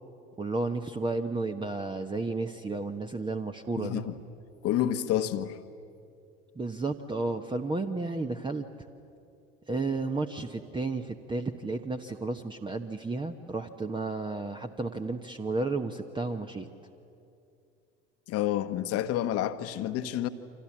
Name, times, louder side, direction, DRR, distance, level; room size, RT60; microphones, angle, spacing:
voice 1, 0.4-4.0 6.5-8.7 9.7-16.7, right 3 dB, 15° right, 1.1 m, -32 dB
voice 2, 3.8-4.2 4.6-5.6 18.3-20.3, left 12 dB, 50° left, 1.3 m, -29 dB
29.0 x 26.0 x 7.4 m
figure-of-eight pair, 65°, 32 cm